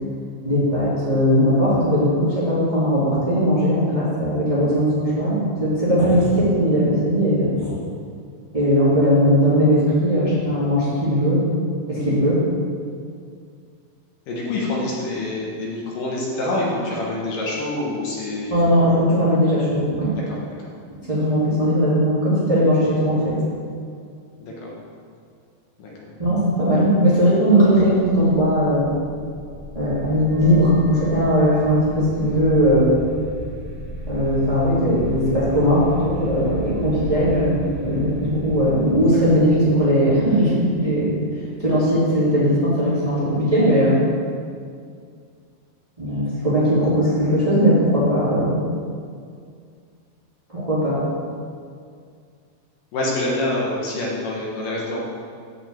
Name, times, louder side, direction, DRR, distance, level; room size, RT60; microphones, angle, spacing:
voice 1, 0.4-7.7 8.5-11.4 11.9-12.4 18.5-20.1 21.1-23.3 26.2-28.9 29.7-32.9 34.1-41.2 41.6-44.0 46.0-48.6 50.5-51.0, equal, 30° right, -11 dB, 0.6 m, -19 dB
voice 2, 14.3-18.5 24.4-24.7 25.8-25.9 52.9-55.0, left 2 dB, 65° left, -4 dB, 2.3 m, -26 dB
sound 1, 28.2-41.5, left 1 dB, 75° right, 1.3 m, -35 dB
8.4 x 4.9 x 7.5 m, 2.2 s
omnidirectional pair, 5.2 m